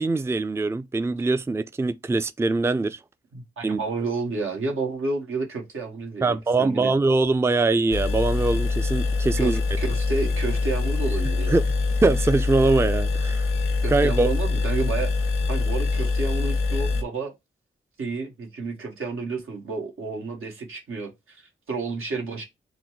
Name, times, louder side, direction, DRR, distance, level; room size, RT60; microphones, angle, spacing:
voice 1, 0.0-3.0 3.6-3.8 6.2-9.6 11.5-11.7 12.0-13.5 13.9-14.3, right 3 dB, 10° right, 0.4 m, -22 dB
voice 2, 3.3-6.9 9.4-11.6 13.8-17.3 18.0-22.4, right 3 dB, 90° right, 1.4 m, -31 dB
sound 1, 7.9-17.0, left 3 dB, 85° left, 0.8 m, -24 dB
3.9 x 2.2 x 4.5 m
cardioid pair, 50°, 21 cm